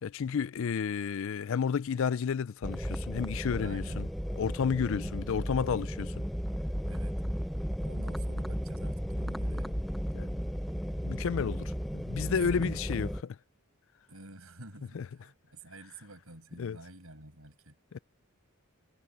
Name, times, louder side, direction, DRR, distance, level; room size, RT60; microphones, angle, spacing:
voice 1, 0.0-4.1 4.4-6.1 10.1-10.4 11.0-13.4 14.9-15.1 16.6-16.8 17.9-18.0, left 6 dB, 65° left, 0.4 m, -31 dB
sound 1, 2.6-13.2, equal, ahead, 0.5 m, -34 dB
voice 2, 3.6-4.1 4.9-5.2 6.8-7.1 7.8-9.8 12.5-12.8 14.1-17.8, right 1 dB, 75° right, 7.9 m, -49 dB
head